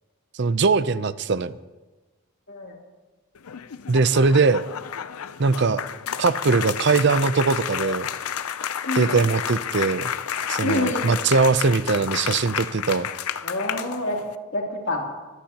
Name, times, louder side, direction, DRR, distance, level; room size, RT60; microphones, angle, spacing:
voice 1, 0.4-1.5 3.9-4.7 5.4-5.8 6.2-8.1 9.0-10.1 10.5-13.1, right 4 dB, 50° right, 14 dB, 0.5 m, -21 dB
voice 2, 2.5-2.8 8.8-9.2 10.6-11.1 13.4-14.2 14.5-15.1, left 2 dB, 55° left, -1 dB, 3.0 m, -27 dB
sound 1, 3.3-14.3, left 9 dB, 75° left, 0.5 m, -31 dB
23.0 x 16.5 x 2.9 m, 1.2 s
head